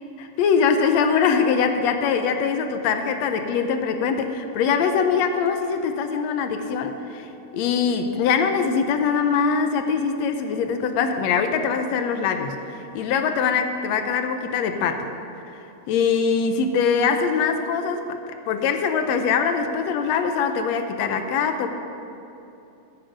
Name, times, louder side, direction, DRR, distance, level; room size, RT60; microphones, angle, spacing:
voice 1, 0.2-7.3 7.5-15.1 15.9-21.7, left 6 dB, 75° left, 7 dB, 1.7 m, -23 dB
13.0 x 7.7 x 5.2 m, 2.9 s
omnidirectional pair, 3.4 m